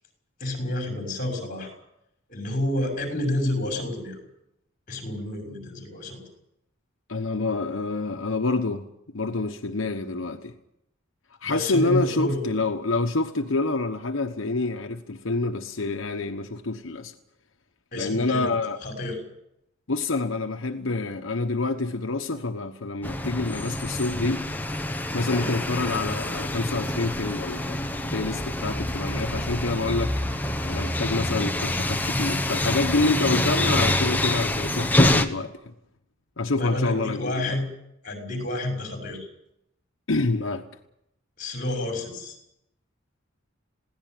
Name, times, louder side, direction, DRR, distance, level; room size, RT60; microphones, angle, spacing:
voice 1, 0.4-1.7 2.3-4.2 4.9-6.2 11.4-12.5 17.9-18.5 18.8-19.2 25.1-25.6 36.6-37.7 38.0-39.3 41.4-42.4, left 1 dB, 45° left, 3 dB, 6.0 m, -29 dB
voice 2, 7.1-8.9 9.1-10.5 11.4-17.1 17.9-18.8 19.9-24.4 25.1-27.8 28.1-35.5 36.4-37.6 40.1-40.6, left 3 dB, 85° left, 4 dB, 1.2 m, -27 dB
sound 1, 23.0-35.3, left 1 dB, 10° left, 1.2 m, -26 dB
21.0 x 17.0 x 9.2 m, 0.82 s
head